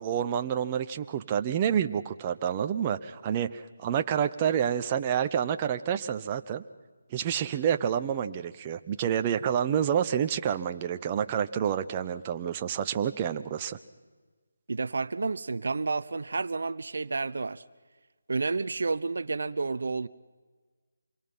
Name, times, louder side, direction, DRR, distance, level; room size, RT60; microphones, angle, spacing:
voice 1, 0.0-6.6 7.1-13.8, right 9 dB, 25° right, 0.8 m, -28 dB
voice 2, 14.7-17.6 18.3-20.1, right 3 dB, 65° right, 0.8 m, -30 dB
27.0 x 23.0 x 5.7 m
figure-of-eight pair, 160°, 0 cm